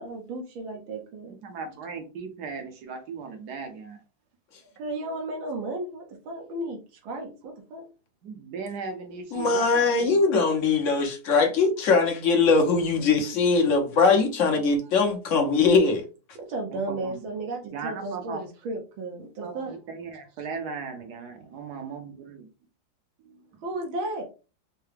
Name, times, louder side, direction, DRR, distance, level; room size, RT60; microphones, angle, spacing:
voice 1, 0.0-1.4 4.8-7.8 16.3-19.8 23.6-24.2, right 2 dB, 85° right, 1.6 m, -34 dB
voice 2, 1.3-4.0 8.2-10.3 16.7-17.2 17.6-18.4 19.4-22.4 23.2-23.6, right 5 dB, 65° right, 1.1 m, -38 dB
voice 3, 9.3-16.0, left 4 dB, 55° left, 0.9 m, -21 dB
4.6 x 2.2 x 3.3 m
omnidirectional pair, 2.1 m